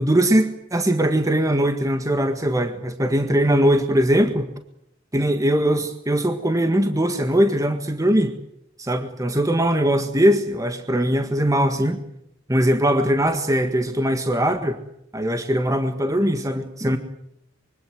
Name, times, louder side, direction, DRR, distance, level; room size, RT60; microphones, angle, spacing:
voice 1, 0.0-4.5 5.1-8.3 8.8-12.0 12.5-14.8 15.1-17.0, equal, 15° right, 7 dB, 1.7 m, -20 dB
26.0 x 24.0 x 7.8 m, 0.78 s
head